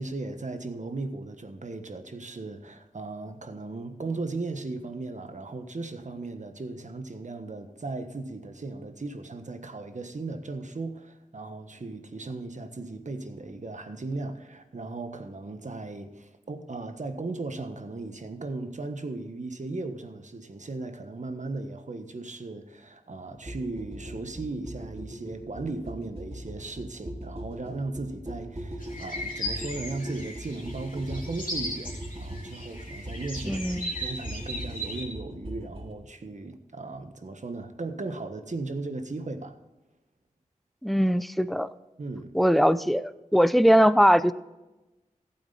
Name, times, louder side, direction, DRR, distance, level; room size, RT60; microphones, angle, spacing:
voice 1, 0.0-39.5 42.0-42.3, right 3 dB, 60° right, 7 dB, 1.4 m, -37 dB
sound 1, 23.5-35.9, right 1 dB, 40° right, 4.9 m, -39 dB
sound 2, 28.8-35.1, left 1 dB, 90° left, 2.9 m, -37 dB
voice 2, 33.4-33.9 40.8-41.7 42.3-44.3, equal, ahead, 14 dB, 0.6 m, -21 dB
15.5 x 8.6 x 4.1 m, 1.1 s
wide cardioid pair, 50°, 14 cm